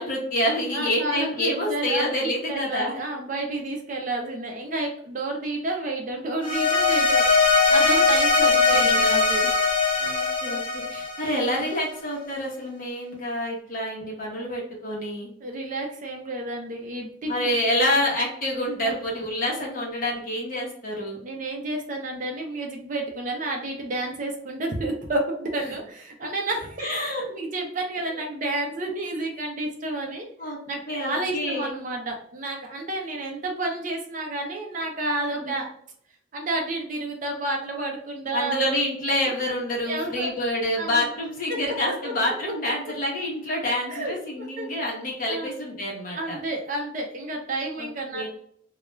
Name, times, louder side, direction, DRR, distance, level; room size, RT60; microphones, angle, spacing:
voice 1, 0.0-3.0 8.4-9.1 10.0-15.3 17.3-21.2 25.6-25.7 26.8-27.3 28.1-28.2 30.4-30.6 30.9-31.7 35.4-35.6 38.3-46.4 47.8-47.9 48.1-48.3, left 1 dB, 45° left, -2 dB, 0.8 m, -27 dB
voice 2, 0.7-7.3 7.7-9.5 15.4-17.6 18.8-18.9 21.2-26.9 27.3-30.3 30.7-35.7 36.3-38.8 39.9-40.3 40.8-41.0 41.5-41.6 42.0-42.3 43.9-44.2 44.6-44.7 45.3-45.5 46.2-48.3, right 2 dB, 40° right, 1 dB, 0.5 m, -30 dB
sound 1, 6.4-11.8, left 4 dB, 25° left, 0.4 m, -21 dB
2.3 x 2.1 x 3.0 m, 0.63 s
head